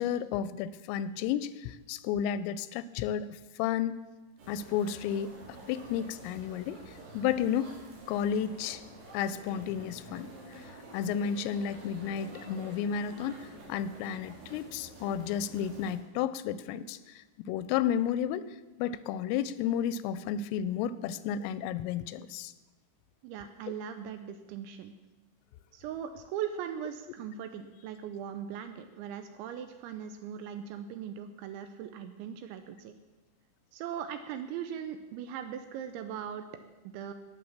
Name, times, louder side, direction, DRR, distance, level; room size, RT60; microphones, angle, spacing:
voice 1, 0.0-4.0 4.5-6.8 7.1-7.8 8.1-8.8 9.1-10.3 10.9-22.5, left 9 dB, 85° left, 16 dB, 3.2 m, -32 dB
sound 1, 4.4-15.9, right 2 dB, 65° right, 5.7 m, -49 dB
voice 2, 23.2-24.9 25.7-33.0 33.7-36.5 36.8-37.1, right 9 dB, 80° right, 9 dB, 2.8 m, -39 dB
18.0 x 6.6 x 7.3 m, 1.1 s
omnidirectional pair, 5.8 m